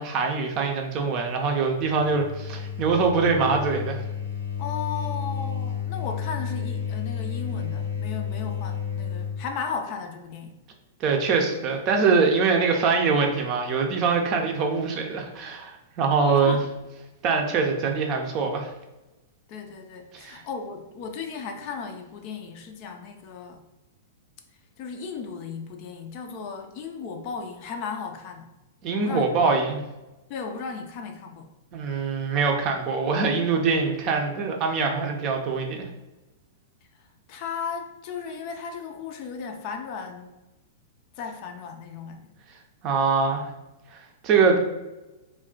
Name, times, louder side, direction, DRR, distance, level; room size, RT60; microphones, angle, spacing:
voice 1, 0.0-4.0 11.0-16.6 17.2-18.7 20.1-20.4 28.8-29.8 31.7-35.8 42.8-43.5 43.9-44.6, right 4 dB, 40° right, 2 dB, 0.5 m, -23 dB
sound 1, 1.7-9.4, left 7 dB, 90° left, 0.8 m, -31 dB
voice 2, 4.6-10.6 16.4-16.7 19.5-23.6 24.8-28.5 28.9-29.3 30.3-31.5 37.3-40.4 41.1-42.3, left 5 dB, 45° left, 4 dB, 0.4 m, -35 dB
2.3 x 2.2 x 3.7 m, 1.0 s
hypercardioid pair, 110°, 0 cm